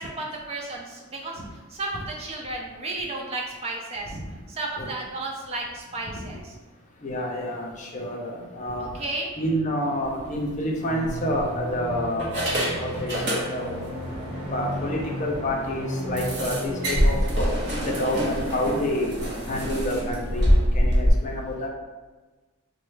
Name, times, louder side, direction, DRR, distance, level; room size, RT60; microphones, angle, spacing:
voice 1, 0.0-1.4 1.7-4.2 4.5-6.5 8.8-9.3, right 2 dB, 30° right, 0 dB, 0.3 m, -33 dB
voice 2, 7.0-8.9 9.4-12.3 12.8-13.8 14.5-17.5 17.9-19.1 19.5-21.7, left 1 dB, 35° left, -1 dB, 0.4 m, -28 dB
sound 1, 10.1-10.4 11.0-11.7 12.2-13.9 14.2-14.3 14.7-14.8 15.2-15.3 16.2-21.1, equal, 50° right, 0.8 m, -25 dB
sound 2, 10.8-17.1, equal, 10° right, 1.2 m, -34 dB
3.1 x 2.1 x 3.1 m, 1.2 s
head